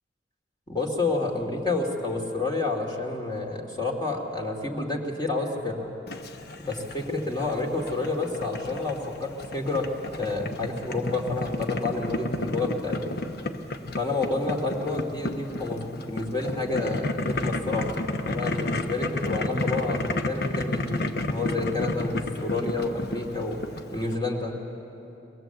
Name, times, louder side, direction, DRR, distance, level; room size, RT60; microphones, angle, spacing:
voice 1, 0.7-5.9 6.6-9.9 10.2-13.2 14.0-23.6 23.9-24.5, left 3 dB, 25° left, 0 dB, 2.4 m, -29 dB
Boiling, 6.1-24.2, left 2 dB, 60° left, 1.0 m, -32 dB
22.0 x 19.5 x 7.9 m, 3.0 s
head